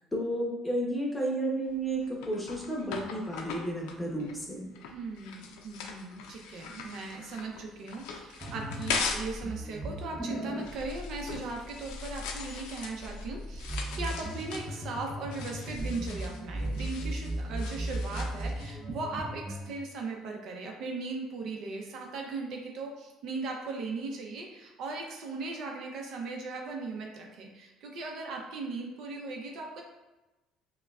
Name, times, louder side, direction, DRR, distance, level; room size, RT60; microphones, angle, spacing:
voice 1, 0.1-4.7, right 1 dB, 15° left, -2 dB, 0.9 m, -32 dB
sound 1, 1.6-9.4 9.7-18.8, left 5 dB, 90° left, 0.4 m, -40 dB
voice 2, 4.9-29.8, right 3 dB, 65° right, 1 dB, 0.7 m, -38 dB
sound 2, 8.4-19.7, right 1 dB, 25° right, 0.8 m, -37 dB
5.3 x 2.2 x 2.4 m, 1.1 s
cardioid pair, 110°, 0 cm